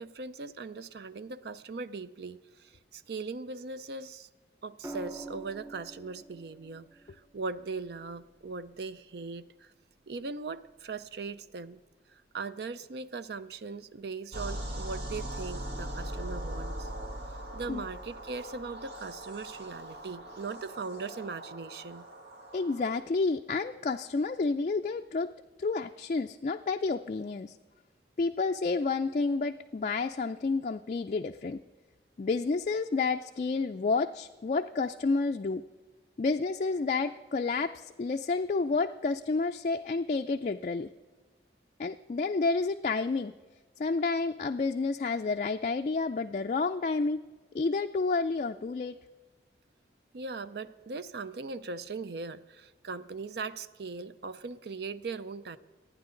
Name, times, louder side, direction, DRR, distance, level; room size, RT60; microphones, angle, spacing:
voice 1, 0.0-4.3 4.6-9.7 10.1-11.8 12.1-16.9 17.5-22.1 50.1-55.6, right 4 dB, 60° right, 14 dB, 0.5 m, -39 dB
sound 1, 4.8-9.0 10.7-11.0, right 2 dB, 15° right, 0.5 m, -47 dB
sound 2, 14.3-22.9, right 1 dB, 75° right, 1.6 m, -40 dB
voice 2, 22.5-25.3 25.6-27.6 28.2-31.6 32.2-35.6 36.2-40.9 41.8-43.3 43.8-47.2 47.5-48.9, left 4 dB, 40° left, 5 dB, 0.3 m, -30 dB
27.0 x 9.6 x 3.8 m, 1.4 s
head